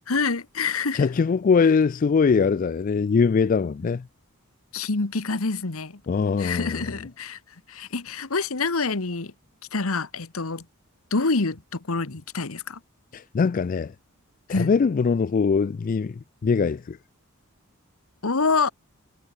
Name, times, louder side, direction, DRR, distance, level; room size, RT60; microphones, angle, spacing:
voice 1, 0.1-1.1 3.8-3.9 4.7-6.0 6.4-7.4 7.7-9.3 9.7-10.6 11.1-12.8 14.5-14.7 18.2-18.7, left 4 dB, 75° left, 1.4 m, -26 dB
voice 2, 0.9-4.0 6.1-7.0 13.1-13.9 14.5-17.0, left 5 dB, 40° left, 0.3 m, -22 dB
head